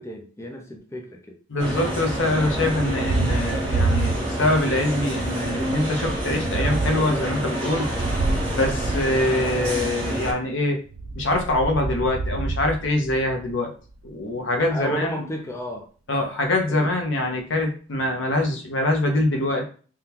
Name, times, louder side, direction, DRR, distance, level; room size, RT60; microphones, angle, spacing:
voice 1, 0.0-1.4 14.7-15.9 16.7-16.9, equal, 15° left, 2 dB, 0.5 m, -32 dB
voice 2, 1.5-7.9 8.5-10.8 11.2-13.7 14.0-15.1 16.1-19.7, left 1 dB, 75° left, 3 dB, 0.7 m, -24 dB
sound 1, 1.6-10.3, right 1 dB, 30° right, 1.3 m, -28 dB
Thunder, 2.2-4.7 5.0-9.8 10.9-13.5, right 3 dB, 85° right, 0.4 m, -28 dB
3.6 x 2.3 x 2.8 m, 0.40 s
head